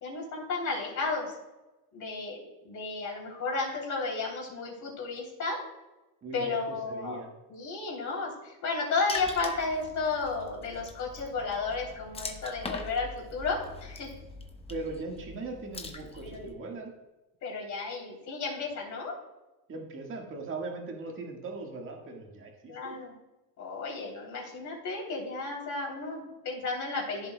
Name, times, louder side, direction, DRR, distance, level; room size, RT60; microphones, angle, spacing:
voice 1, 0.0-1.3 1.9-5.6 6.3-7.2 7.5-14.1 16.2-16.5 17.4-19.1 22.7-23.1 23.6-27.3, left 4 dB, 45° left, -2 dB, 3.2 m, -33 dB
voice 2, 6.2-7.3 14.7-16.9 19.7-23.0, right 3 dB, 30° right, 0 dB, 1.6 m, -39 dB
Water / Splash splatter, 9.1-16.5, left 4 dB, 15° left, 0.7 m, -43 dB
14.5 x 7.4 x 2.2 m, 1.0 s
cardioid pair, 150°, 41 cm